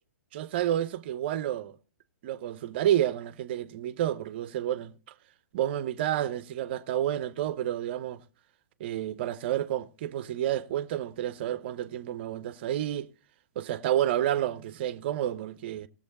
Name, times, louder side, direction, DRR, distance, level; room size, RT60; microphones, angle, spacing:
voice 1, 0.3-1.7 2.2-4.9 5.5-8.2 8.8-13.1 13.6-15.9, right 11 dB, 40° right, 0.7 m, -30 dB
18.5 x 7.3 x 4.1 m
figure-of-eight pair, 115°, 9 cm